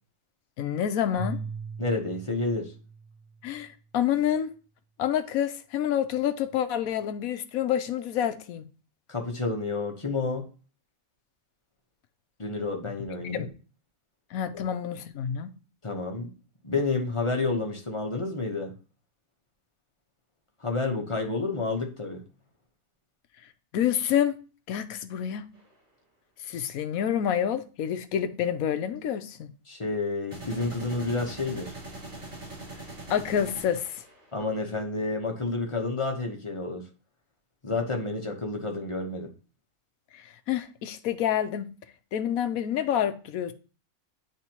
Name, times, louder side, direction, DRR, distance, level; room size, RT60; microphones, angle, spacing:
voice 1, 0.6-1.4 3.4-4.5 5.0-8.6 13.2-13.5 14.3-15.5 23.7-24.4 24.7-25.5 26.5-29.5 33.1-33.9 40.1-41.7 42.1-43.5, left 9 dB, 75° left, 1.1 m, -28 dB
Keyboard (musical), 1.1-3.4, right 2 dB, 25° right, 1.7 m, -38 dB
voice 2, 1.8-2.7 9.1-10.4 12.4-13.5 15.8-16.3 16.6-18.7 20.6-22.2 29.7-31.7 34.3-36.8 37.6-39.3, left 3 dB, 25° left, 0.9 m, -30 dB
sound 1, 25.5-25.7 30.3-34.5, right 2 dB, 50° right, 3.1 m, -42 dB
9.6 x 3.5 x 2.9 m
omnidirectional pair, 1.5 m